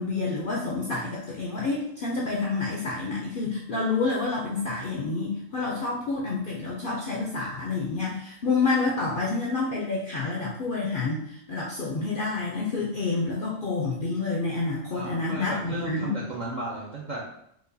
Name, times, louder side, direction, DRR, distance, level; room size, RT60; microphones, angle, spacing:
voice 1, 0.0-16.2, left 3 dB, 65° left, -3 dB, 0.5 m, -28 dB
voice 2, 14.9-17.2, right 2 dB, 60° right, -4 dB, 0.4 m, -35 dB
4.7 x 2.3 x 2.6 m, 0.73 s
omnidirectional pair, 1.4 m